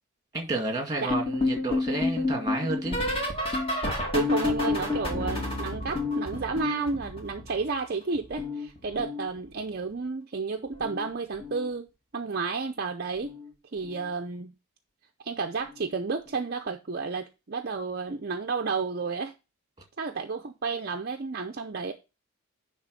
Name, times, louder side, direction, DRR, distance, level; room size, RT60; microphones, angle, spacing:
voice 1, 0.3-3.0, right 2 dB, 20° right, 2.0 m, -31 dB
sound 1, 1.1-7.9 8.1-9.7 10.7-11.1 11.3-11.7 13.2-13.5 13.8-14.1 15.7-15.8, left 2 dB, 25° left, 2.1 m, -30 dB
voice 2, 4.1-11.9 12.1-13.3 13.7-14.5 15.2-19.3 20.0-21.9, right 4 dB, 45° right, 0.6 m, -31 dB
10.5 x 3.6 x 5.2 m
head